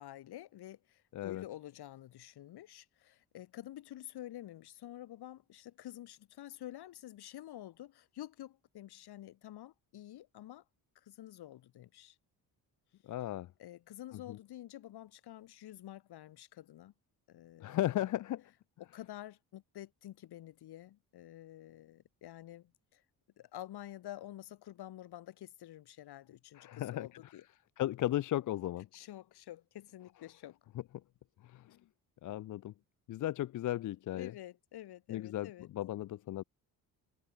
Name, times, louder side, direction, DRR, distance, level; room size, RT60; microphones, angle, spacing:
voice 1, 0.0-10.6 10.9-12.2 13.6-16.9 17.3-17.8 18.8-23.0 23.4-27.4 28.9-30.6 31.7-31.8 34.1-35.7, left 13 dB, 80° left, 6.4 m, -49 dB
voice 2, 1.1-1.4 13.0-13.5 14.3-14.4 17.6-18.4 26.5-27.1 27.8-28.9 31.4-31.7 32.2-32.7 33.1-34.3 35.1-36.4, left 14 dB, 55° left, 0.5 m, -35 dB
cardioid pair, 100°, 38 cm